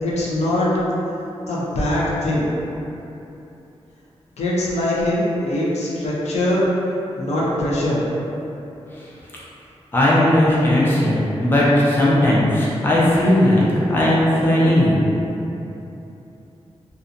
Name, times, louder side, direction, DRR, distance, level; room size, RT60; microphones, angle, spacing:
voice 1, 0.0-0.7 1.5-2.5 4.4-6.7 7.2-8.0, left 1 dB, 80° left, -6 dB, 0.5 m, -22 dB
voice 2, 9.9-15.0, left 1 dB, 20° left, -7 dB, 0.4 m, -17 dB
2.5 x 2.2 x 2.5 m, 2.9 s
wide cardioid pair, 165°, 11 cm